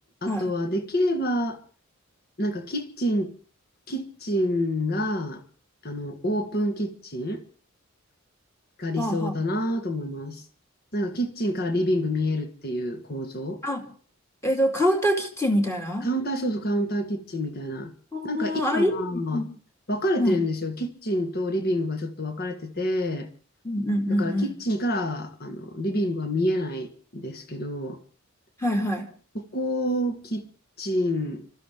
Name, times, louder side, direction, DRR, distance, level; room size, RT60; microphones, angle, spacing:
voice 1, 0.2-1.6 2.4-3.3 3.9-5.4 5.8-7.4 8.8-10.4 10.9-13.6 16.0-17.9 18.2-19.4 19.9-23.3 24.2-28.0 29.3-30.5 30.8-31.5, equal, 45° left, 1.7 m, -27 dB
voice 2, 9.0-9.3 13.6-13.8 14.4-16.1 18.1-19.5 20.2-20.4 23.6-24.5 28.6-29.1, equal, 15° left, 2.3 m, -25 dB
29.5 x 13.5 x 3.6 m
head